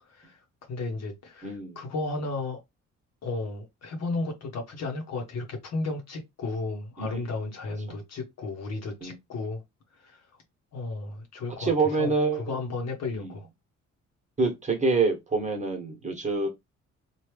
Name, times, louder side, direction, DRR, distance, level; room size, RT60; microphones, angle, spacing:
voice 1, 0.7-2.6 3.2-9.6 10.0-10.2 10.7-11.7 12.0-13.5, left 3 dB, 55° left, 1.0 m, -34 dB
voice 2, 1.4-1.8 7.0-7.2 7.9-8.0 9.0-9.2 11.6-12.6 13.1-13.4 14.4-16.5, right 4 dB, 25° right, 1.2 m, -26 dB
3.0 x 2.4 x 3.2 m
cardioid pair, 90°, 30 cm